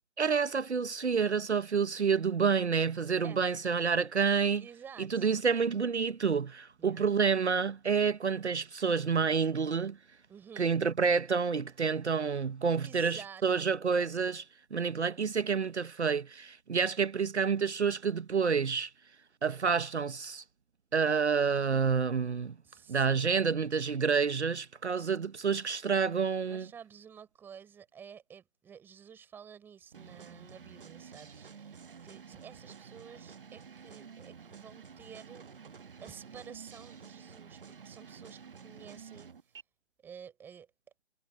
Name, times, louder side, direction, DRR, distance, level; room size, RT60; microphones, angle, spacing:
voice 1, 0.2-4.6 5.0-10.0 10.6-14.4 14.7-18.9 19.4-20.4 20.9-22.5 22.9-26.7, right 5 dB, 65° right, 1.1 m, -29 dB
voice 2, 4.6-5.3 6.8-7.1 10.3-10.7 12.8-14.1 22.6-23.3 26.4-35.6 36.0-39.4 40.0-40.7, right 7 dB, 5° right, 5.0 m, -51 dB
sound 1, 29.9-39.6, right 6 dB, 45° right, 1.4 m, -50 dB
figure-of-eight pair, 160°, 36 cm